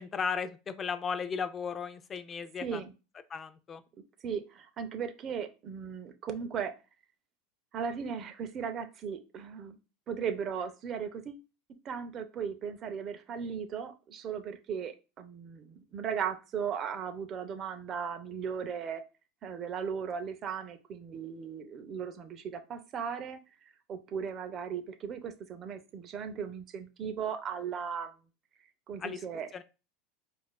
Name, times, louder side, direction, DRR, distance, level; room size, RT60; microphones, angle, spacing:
voice 1, 0.0-2.8 3.3-3.8 29.0-29.2 29.5-29.6, left 6 dB, 25° left, 11 dB, 0.3 m, -35 dB
voice 2, 2.6-2.9 4.2-6.7 7.7-9.8 10.1-11.4 11.8-19.0 19.4-23.4 23.9-28.1 28.9-29.5, right 7 dB, 35° right, 8 dB, 0.6 m, -37 dB
4.5 x 2.5 x 2.2 m, 0.31 s
supercardioid pair, 115°, 0 cm